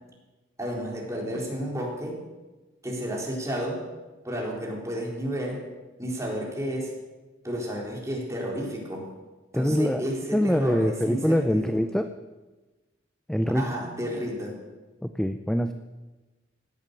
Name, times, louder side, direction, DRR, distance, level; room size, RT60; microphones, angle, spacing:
voice 1, 0.6-2.2 2.8-3.8 4.2-5.6 6.0-6.9 7.4-9.1 9.5-11.8 13.5-14.6, equal, 15° right, -2 dB, 3.8 m, -31 dB
voice 2, 9.5-10.0 10.3-12.1 13.3-13.7 15.0-15.7, equal, 5° left, 8 dB, 0.5 m, -24 dB
17.0 x 11.0 x 6.6 m, 1.2 s
head